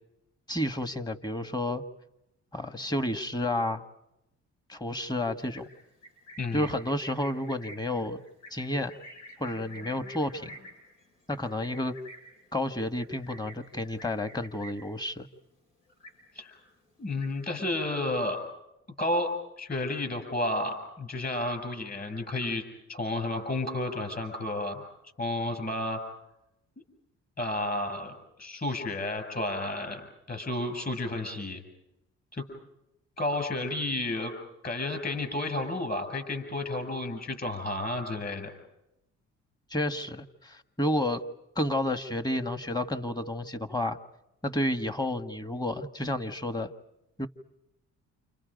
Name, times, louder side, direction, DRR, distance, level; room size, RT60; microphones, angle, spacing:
voice 1, 0.5-1.8 2.5-3.8 4.7-5.7 6.5-8.2 8.5-9.0 9.4-10.5 11.3-11.9 12.5-15.3 39.7-41.2 41.5-44.0 44.4-46.7 47.2-47.3, left 1 dB, 15° left, 10 dB, 1.4 m, -31 dB
Livestock farm animals working animals, 5.4-15.0 15.3-15.6 15.9-16.6 16.9-17.6, equal, 80° left, 7.9 m, -49 dB
voice 2, 17.0-18.4 19.0-22.6 22.9-24.8 25.2-26.0 27.4-31.6 32.3-32.5 33.2-34.3 34.6-38.5, left 2 dB, 30° left, 7 dB, 7.7 m, -31 dB
29.5 x 28.5 x 5.2 m, 0.86 s
cardioid pair, 90°, 30 cm